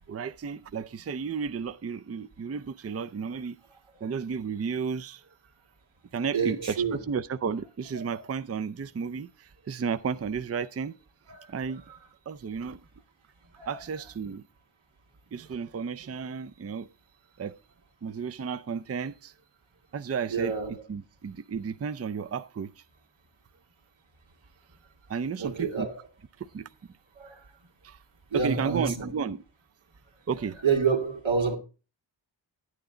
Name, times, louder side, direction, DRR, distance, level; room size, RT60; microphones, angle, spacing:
voice 1, 0.1-3.6 4.0-5.3 6.1-11.0 11.5-11.8 12.3-12.8 13.7-14.4 15.3-16.9 17.4-17.6 18.0-19.3 19.9-20.5 20.9-22.8 25.1-25.9 26.4-26.7 27.8-28.0 28.3-29.4 30.3-30.6, right 6 dB, 35° right, 0.5 m, -33 dB
voice 2, 6.3-7.0 8.0-8.2 11.3-11.5 11.9-12.0 13.5-13.7 20.3-20.7 25.4-26.0 27.2-27.5 28.3-29.1 30.6-31.6, right 5 dB, 90° right, 2.0 m, -28 dB
10.5 x 9.3 x 3.8 m
wide cardioid pair, 70°, 45 cm